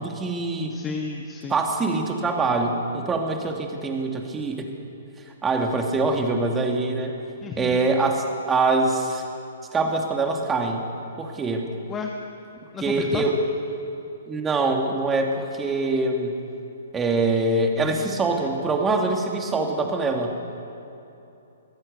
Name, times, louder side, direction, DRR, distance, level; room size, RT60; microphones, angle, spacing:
voice 1, 0.0-0.7 1.5-4.7 5.4-7.1 7.6-9.2 9.7-10.8 11.2-11.7 12.8-13.4 14.3-16.4 16.9-20.3, right 3 dB, 15° right, 2 dB, 2.6 m, -24 dB
voice 2, 0.7-1.6 7.4-7.8 11.9-12.1 12.7-13.2, left 6 dB, 20° left, 2 dB, 1.4 m, -32 dB
23.5 x 16.5 x 6.9 m, 2.9 s
figure-of-eight pair, 125°, 0 cm